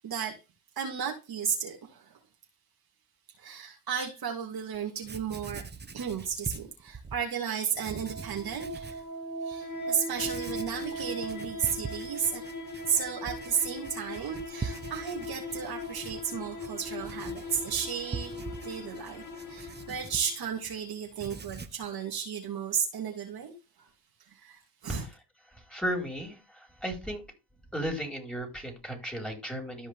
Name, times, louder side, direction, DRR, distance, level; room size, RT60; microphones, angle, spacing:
voice 1, 0.0-0.4 0.8-2.2 3.4-5.6 5.9-9.0 9.4-12.4 12.9-18.3 18.6-23.5 23.8-23.9 24.3-25.1, right 7 dB, 50° right, 2.6 m, -33 dB
Writing, 4.7-4.8 5.0-7.2 7.7-9.0 9.5-9.6 10.1-20.8 21.1-21.9, right 4 dB, 20° right, 1.2 m, -43 dB
sound 1, 7.6-20.6, left 1 dB, 35° left, 4.5 m, -39 dB
voice 2, 25.7-27.2 27.7-29.9, equal, ahead, 4.6 m, -35 dB
13.5 x 5.2 x 3.5 m
hypercardioid pair, 60°, 48 cm